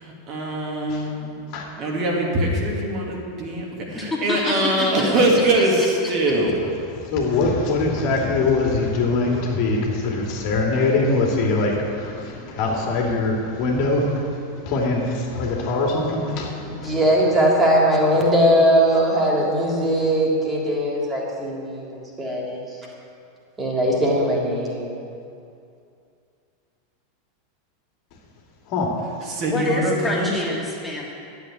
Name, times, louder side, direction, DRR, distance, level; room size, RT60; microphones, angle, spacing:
voice 1, 0.0-1.3 1.8-6.5 29.3-30.3, right 1 dB, 40° right, -1 dB, 2.8 m, -22 dB
voice 2, 3.9-5.0 5.6-6.3 29.4-31.0, left 2 dB, 10° left, -3 dB, 2.7 m, -27 dB
voice 3, 6.9-17.0 28.7-28.9, left 3 dB, 45° left, -1 dB, 2.6 m, -23 dB
voice 4, 16.6-22.6 23.6-24.9, equal, 20° right, -3 dB, 3.4 m, -20 dB
12.0 x 8.0 x 8.4 m, 2.5 s
figure-of-eight pair, 85°, 0 cm